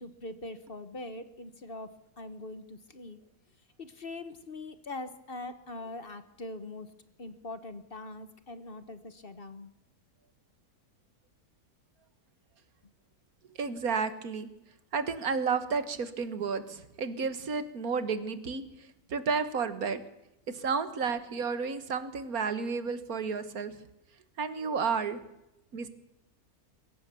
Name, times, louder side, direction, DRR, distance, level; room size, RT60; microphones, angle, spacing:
voice 1, 0.0-3.2 3.8-6.9 7.2-9.7, left 2 dB, 40° left, 11 dB, 1.4 m, -42 dB
voice 2, 13.6-14.5 14.9-20.0 20.5-23.8 24.4-25.2 25.7-25.9, right 5 dB, 80° right, 12 dB, 1.9 m, -32 dB
22.0 x 17.0 x 7.0 m, 0.86 s
omnidirectional pair, 1.5 m